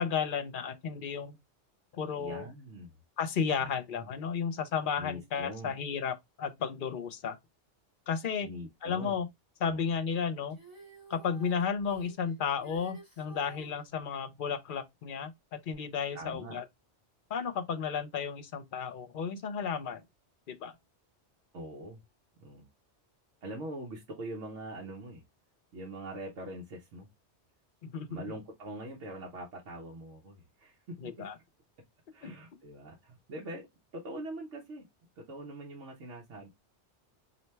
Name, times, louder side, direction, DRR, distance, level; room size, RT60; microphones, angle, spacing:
voice 1, 0.0-1.4 1.9-2.5 3.2-7.4 8.1-8.5 8.8-9.3 9.6-10.6 11.1-16.6 17.3-20.0 20.5-20.7 27.8-28.2 31.0-31.3 32.2-32.3, left 6 dB, 55° left, 0.7 m, -33 dB
voice 2, 2.2-2.9 3.6-4.1 5.0-5.7 8.4-9.2 9.6-9.9 16.1-16.6 21.5-22.0 22.4-22.7 23.4-25.2 25.7-27.1 28.1-31.3 32.1-33.7 33.9-34.8 35.2-36.5, right 1 dB, 80° right, 1.2 m, -43 dB
Female singing, 10.5-13.8 15.7-15.8, right 2 dB, 20° right, 1.6 m, -52 dB
4.2 x 2.7 x 3.2 m
omnidirectional pair, 1.2 m